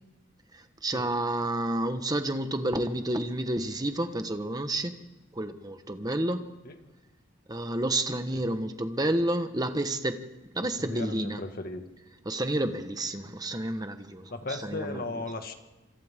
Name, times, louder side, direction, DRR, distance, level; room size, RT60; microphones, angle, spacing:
voice 1, 0.5-4.9 5.3-6.4 7.5-10.2 10.5-11.4 12.2-15.2, right 1 dB, 20° right, 8 dB, 1.3 m, -30 dB
voice 2, 10.8-11.8 13.2-13.3 14.3-15.6, left 2 dB, 50° left, 5 dB, 1.9 m, -36 dB
27.0 x 26.0 x 3.8 m, 1.1 s
head